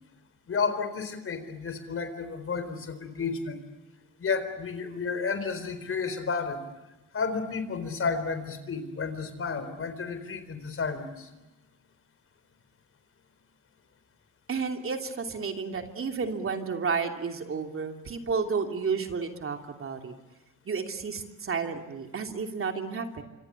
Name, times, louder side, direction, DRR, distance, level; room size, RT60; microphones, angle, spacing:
voice 1, 0.5-3.6 4.2-6.6 7.1-11.3, left 5 dB, 45° left, 10 dB, 4.2 m, -31 dB
voice 2, 14.5-20.1 20.6-23.2, right 5 dB, 45° right, 4 dB, 3.0 m, -31 dB
26.5 x 25.5 x 8.4 m, 1.1 s
cardioid pair, 90°, 30 cm